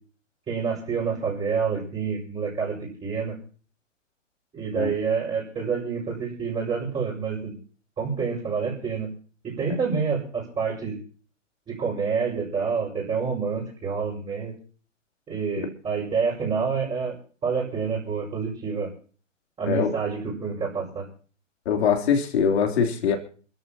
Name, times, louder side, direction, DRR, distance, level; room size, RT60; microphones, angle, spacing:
voice 1, 0.5-3.4 4.5-7.5 8.0-9.1 9.4-11.0 11.7-14.5 15.3-17.1 17.4-18.9 19.6-21.1, right 5 dB, 15° right, -6 dB, 5.8 m, -28 dB
voice 2, 21.7-23.2, left 7 dB, 55° left, 3 dB, 3.5 m, -22 dB
28.0 x 14.0 x 3.0 m, 0.42 s
figure-of-eight pair, 120°, 39 cm